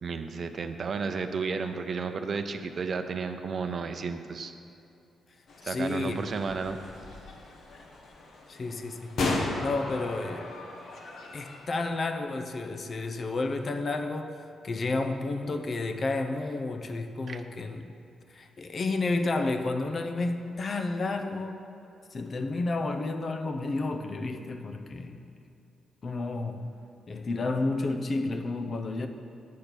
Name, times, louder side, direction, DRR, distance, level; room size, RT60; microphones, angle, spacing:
voice 1, 0.0-4.5 5.6-6.8 17.3-17.4, right 5 dB, 55° right, 8 dB, 0.6 m, -32 dB
sound 1, 5.5-11.7, left 2 dB, 70° left, 1.0 m, -36 dB
voice 2, 5.6-6.2 8.5-9.1 9.6-10.5 11.3-14.3 14.6-17.9 18.3-21.6 22.1-25.2 26.0-26.7 27.1-29.1, left 3 dB, 50° left, 6 dB, 0.7 m, -31 dB
8.4 x 4.4 x 6.7 m, 2.7 s
supercardioid pair, 50°, 0 cm